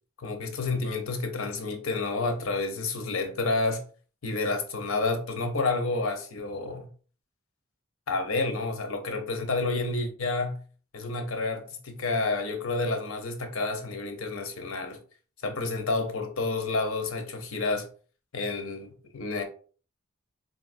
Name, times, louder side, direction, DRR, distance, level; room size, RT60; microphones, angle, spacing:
voice 1, 0.2-3.8 4.2-6.9 8.1-10.6 10.9-15.0 15.4-17.9 18.3-19.4, left 3 dB, 80° left, 0.7 m, -29 dB
3.7 x 2.4 x 2.5 m
head